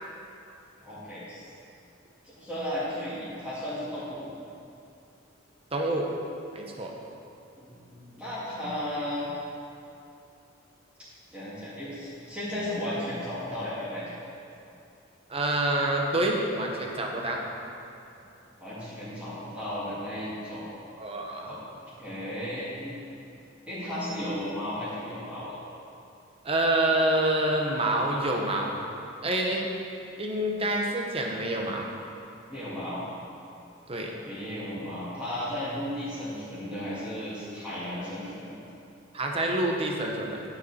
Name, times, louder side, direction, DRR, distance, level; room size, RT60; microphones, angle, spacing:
voice 1, 0.8-1.5 2.2-4.2 7.6-9.3 11.0-14.2 18.6-20.7 21.4-21.6 22.0-23.1 23.7-25.6 32.5-33.0 34.2-38.5, left 1 dB, 5° right, -12 dB, 2.4 m, -35 dB
voice 2, 5.7-6.1 6.5-6.9 15.3-17.4 21.0-21.5 26.4-28.8 29.2-29.7 30.2-31.9 33.9-34.1 39.1-40.4, right 1 dB, 30° right, 0 dB, 1.0 m, -27 dB
11.5 x 6.9 x 4.3 m, 2.7 s
head